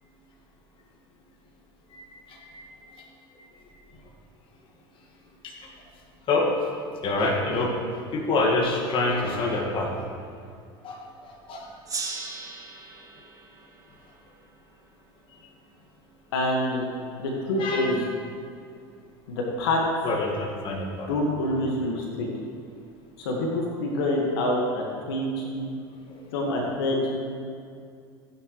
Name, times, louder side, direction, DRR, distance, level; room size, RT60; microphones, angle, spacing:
voice 1, 2.4-2.7 3.0-3.1 5.4-5.5 6.3-6.5 7.0-7.7 8.1-9.9 10.8-11.7 17.6-17.9 20.0-21.1, left 2 dB, 40° left, 0 dB, 2.0 m, -26 dB
Gong, 11.8-15.0, right 4 dB, 25° right, 1.7 m, -38 dB
voice 2, 16.3-16.9 17.2-18.0 19.3-19.8 21.1-22.3 23.2-25.7 26.3-27.3, left 1 dB, 70° left, -1 dB, 1.8 m, -26 dB
15.5 x 9.6 x 3.3 m, 2.4 s
hypercardioid pair, 75°, 13 cm